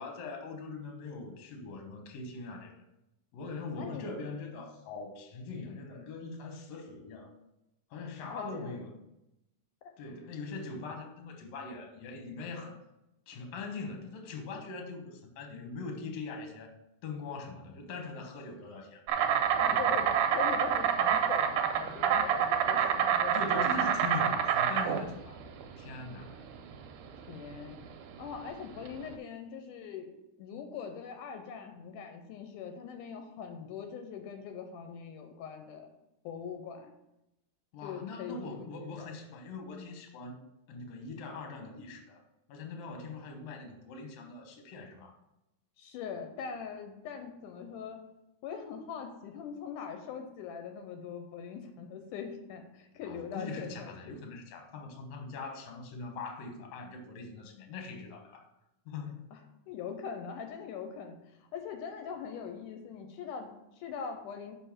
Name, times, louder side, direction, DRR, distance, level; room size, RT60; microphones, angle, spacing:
voice 1, 0.0-2.7 3.3-7.3 7.9-8.9 10.0-12.8 13.3-16.7 17.0-19.0 19.6-19.9 23.3-25.4 25.8-26.4 37.7-40.4 40.7-42.2 42.5-45.2 53.0-58.5 58.9-59.3, left 3 dB, 60° left, 3 dB, 2.0 m, -42 dB
voice 2, 3.7-4.2 8.3-8.8 19.6-23.9 27.3-27.8 28.2-30.1 30.4-35.9 36.2-36.9 37.8-38.7 39.0-39.2 45.8-48.0 48.4-54.2 59.3-59.4 59.7-64.6, left 7 dB, 85° left, 5 dB, 2.1 m, -42 dB
Insect, 19.1-29.1, right 8 dB, 80° right, 1.6 m, -28 dB
5.5 x 4.5 x 5.8 m, 0.88 s
omnidirectional pair, 3.7 m